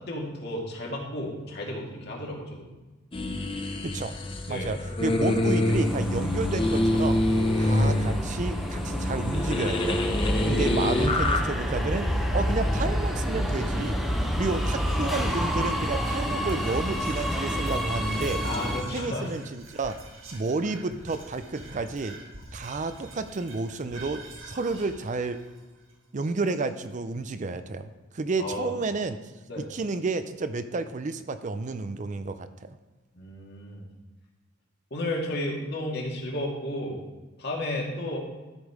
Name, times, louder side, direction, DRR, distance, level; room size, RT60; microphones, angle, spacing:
voice 1, 0.1-2.7 4.5-4.8 18.4-19.3 28.4-28.7 29.5-29.7 33.1-33.9 34.9-37.0 37.4-38.2, left 1 dB, 55° left, -1 dB, 2.1 m, -33 dB
sound 1, 3.1-11.4, left 1 dB, 25° left, 0.8 m, -26 dB
voice 2, 3.8-4.1 4.5-7.2 7.6-10.0 10.4-14.0 14.4-18.4 18.9-20.0 20.3-22.2 22.5-25.4 26.1-29.2 29.6-32.8, right 3 dB, 40° right, 10 dB, 0.5 m, -31 dB
Subway metro underground, 5.7-18.8, equal, ahead, 1.0 m, -29 dB
Whispering, 14.5-27.0, right 2 dB, 80° right, 1.7 m, -46 dB
13.0 x 5.3 x 4.8 m, 1.2 s
head